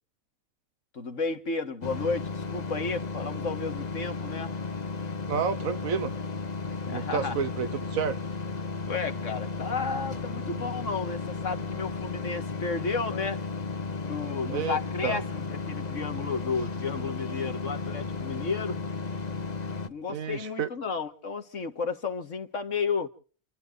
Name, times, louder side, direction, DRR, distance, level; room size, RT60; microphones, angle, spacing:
voice 1, 0.9-4.6 6.9-7.4 8.8-13.4 14.0-18.8 19.9-23.1, left 4 dB, 65° left, 2.0 m, -32 dB
sound 1, 1.8-19.9, left 4 dB, 35° left, 1.0 m, -34 dB
voice 2, 5.3-6.1 6.9-8.2 14.5-15.2 20.1-20.7, right 7 dB, 80° right, 1.5 m, -30 dB
30.0 x 12.5 x 3.9 m
omnidirectional pair, 1.4 m